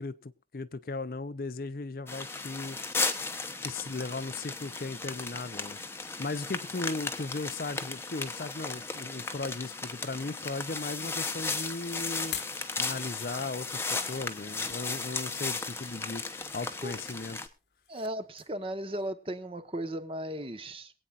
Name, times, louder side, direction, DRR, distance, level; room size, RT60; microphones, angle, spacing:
voice 1, 0.0-2.8 3.6-5.8 6.2-12.4 12.8-16.2 16.5-17.4, left 3 dB, 55° left, 0.6 m, -37 dB
sound 1, 2.1-17.5, left 4 dB, 15° left, 0.9 m, -35 dB
sound 2, 12.2-14.8 15.4-16.0 16.4-18.1 18.4-18.6 19.0-19.1, left 10 dB, 80° left, 1.4 m, -46 dB
voice 2, 17.9-20.9, right 1 dB, 30° right, 1.1 m, -36 dB
22.5 x 8.9 x 2.5 m
head